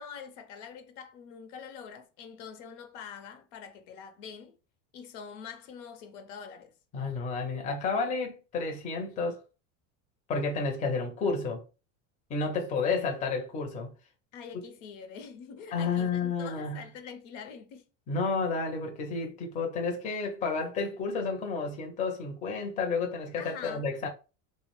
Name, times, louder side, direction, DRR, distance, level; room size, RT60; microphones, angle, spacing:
voice 1, 0.0-4.6 4.9-6.7 14.3-17.8 23.4-23.9, left 6 dB, 75° left, 0.6 m, -45 dB
voice 2, 6.9-9.4 10.3-11.6 12.3-13.9 15.7-16.8 18.1-24.1, left 4 dB, 20° left, 0.4 m, -31 dB
2.4 x 2.0 x 2.9 m
supercardioid pair, 140°, 37 cm